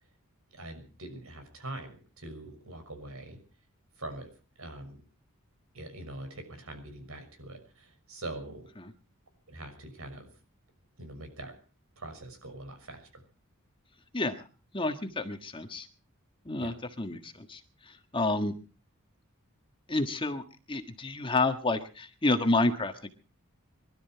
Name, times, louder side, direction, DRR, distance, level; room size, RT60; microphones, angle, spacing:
voice 1, 0.5-3.4 4.0-4.3 4.6-5.0 5.7-8.7 9.5-10.3 11.0-11.5 12.0-13.2 16.5-16.8, right 2 dB, 70° right, 7 dB, 6.2 m, -43 dB
voice 2, 14.7-15.9 16.4-17.6 17.9-18.5 19.9-20.4 20.7-23.1, left 2 dB, 25° left, 7 dB, 1.6 m, -29 dB
24.5 x 13.0 x 4.6 m, 0.38 s
head